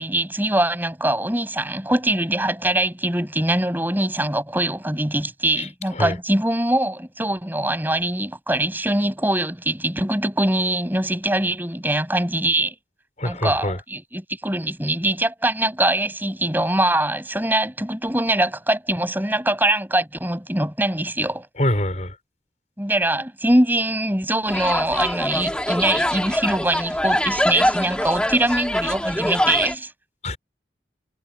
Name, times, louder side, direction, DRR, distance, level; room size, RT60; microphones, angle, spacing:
voice 1, 0.0-12.7 13.2-21.5 22.8-29.9, right 1 dB, 10° right, 6.6 m, -23 dB
voice 2, 5.6-6.2 13.2-13.8 21.6-22.2 30.2-30.4, left 1 dB, 40° left, 5.4 m, -25 dB
sound 1, 24.5-29.7, left 1 dB, 5° left, 3.4 m, -23 dB
head